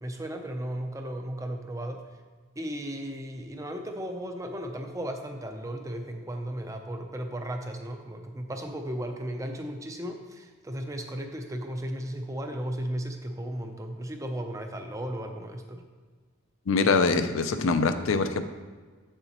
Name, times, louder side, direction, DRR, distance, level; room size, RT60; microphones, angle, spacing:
voice 1, 0.0-2.0 2.6-15.8, right 1 dB, 15° right, 4 dB, 0.5 m, -35 dB
voice 2, 16.7-18.4, left 4 dB, 60° left, 9 dB, 0.5 m, -24 dB
8.1 x 6.8 x 2.9 m, 1.4 s
head